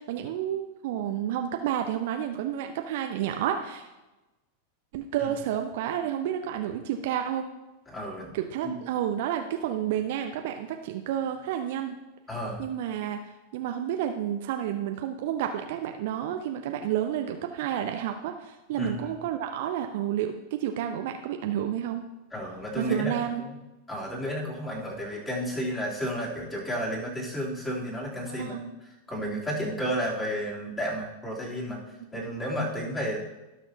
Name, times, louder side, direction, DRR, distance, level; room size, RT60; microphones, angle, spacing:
voice 1, 0.0-3.9 4.9-7.4 8.3-12.0 12.6-13.2 13.5-22.0 22.8-23.4 28.3-28.7, right 10 dB, 50° right, 5 dB, 0.6 m, -30 dB
voice 2, 7.9-8.3 8.6-8.7 12.3-12.6 18.7-19.0 22.3-23.6 23.9-28.6 28.8-31.8 32.1-33.2, equal, 15° left, -4 dB, 3.1 m, -32 dB
17.5 x 6.2 x 2.8 m, 1.1 s
figure-of-eight pair, 90°, 0 cm